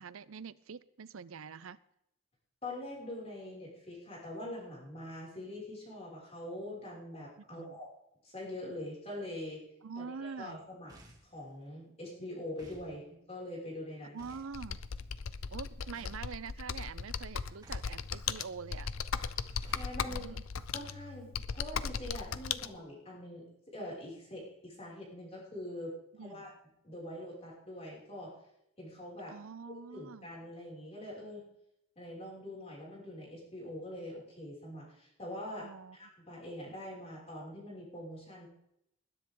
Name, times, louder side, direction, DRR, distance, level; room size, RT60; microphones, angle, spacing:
voice 1, 0.0-1.8 7.5-7.8 9.8-10.6 14.1-14.8 15.5-18.9 20.1-20.4 26.1-26.5 29.3-30.3 35.6-36.0, right 5 dB, 80° right, 17 dB, 0.6 m, -45 dB
voice 2, 2.6-7.9 8.2-9.6 10.0-10.9 11.2-14.2 19.7-20.3 20.7-26.5 26.8-28.3 28.8-29.4 29.9-31.5 32.0-38.5, left 1 dB, 30° left, -5 dB, 6.1 m, -44 dB
sound 1, 10.9-11.4 12.6-12.9 14.2-14.5 15.9-16.3 17.6-18.0 19.6-20.0, right 1 dB, 20° right, 2.3 m, -55 dB
Computer keyboard, 14.5-22.7, left 6 dB, 80° left, 0.6 m, -37 dB
20.5 x 10.0 x 3.8 m, 0.79 s
head